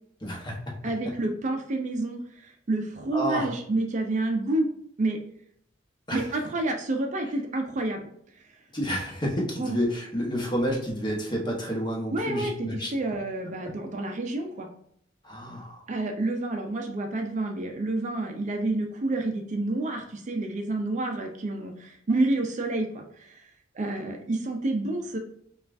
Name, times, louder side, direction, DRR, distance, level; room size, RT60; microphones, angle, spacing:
voice 1, 0.2-0.6 3.1-3.5 6.1-6.4 8.7-12.9 13.6-13.7 15.2-15.8, equal, 25° left, -2 dB, 1.0 m, -30 dB
voice 2, 0.8-4.7 5.0-5.2 6.1-8.1 8.3-8.5 9.6-9.8 12.1-14.7 15.9-23.4 23.7-25.2, right 2 dB, 40° right, 4 dB, 0.4 m, -29 dB
5.3 x 2.4 x 2.5 m, 0.69 s
head